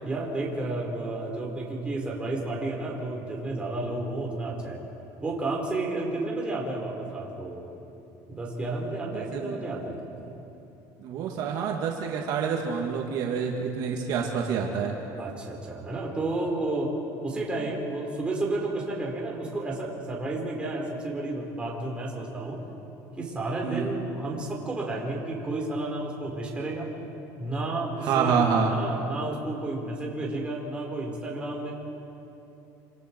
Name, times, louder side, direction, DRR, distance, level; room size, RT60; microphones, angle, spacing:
voice 1, 0.0-4.8 5.2-7.7 8.3-10.0 15.2-22.6 23.2-26.9 27.4-31.7, right 2 dB, 15° right, -2 dB, 4.4 m, -31 dB
voice 2, 9.1-9.5 11.0-14.9 23.6-23.9 28.0-28.7, right 6 dB, 60° right, 0 dB, 2.2 m, -27 dB
27.0 x 27.0 x 4.7 m, 2.9 s
cardioid pair, 145°, 8 cm